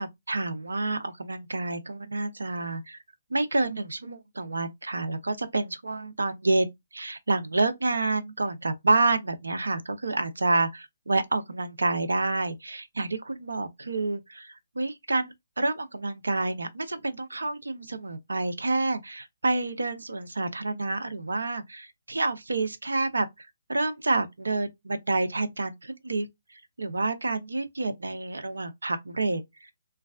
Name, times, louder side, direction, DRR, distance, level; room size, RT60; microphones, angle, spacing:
voice 1, 0.0-3.0 3.3-6.7 6.9-29.7, right 2 dB, 80° right, 0.6 m, -28 dB
3.1 x 2.3 x 2.3 m
figure-of-eight pair, 140°, 0 cm